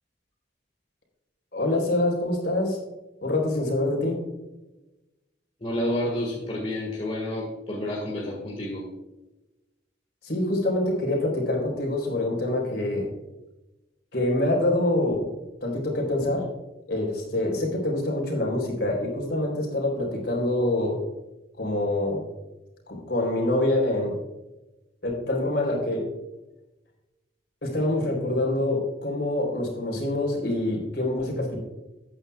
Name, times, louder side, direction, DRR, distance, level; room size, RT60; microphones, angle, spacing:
voice 1, 1.5-2.8 3.2-4.2 10.2-13.1 14.1-15.3 15.6-16.5 16.9-21.0 21.6-22.2 22.9-24.2 25.0-26.1 27.6-31.6, left 1 dB, 60° left, -1 dB, 3.9 m, -25 dB
voice 2, 5.6-8.8, left 1 dB, 35° left, -2 dB, 1.8 m, -29 dB
14.0 x 9.4 x 2.4 m, 1.0 s
head